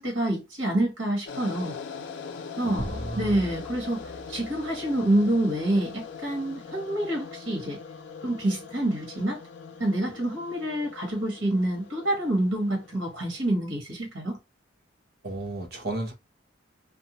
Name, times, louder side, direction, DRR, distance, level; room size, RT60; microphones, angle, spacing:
voice 1, 0.0-1.8 2.6-2.9 3.2-7.8 8.2-9.4 9.8-14.4, right 1 dB, 75° right, 1.4 m, -27 dB
sound 1, 1.3-13.5, left 5 dB, 65° left, 0.4 m, -42 dB
voice 2, 2.6-3.4 15.2-16.1, right 2 dB, 55° right, 0.8 m, -34 dB
sound 2, 2.8-5.6, equal, 5° right, 0.4 m, -39 dB
2.6 x 2.2 x 2.8 m
head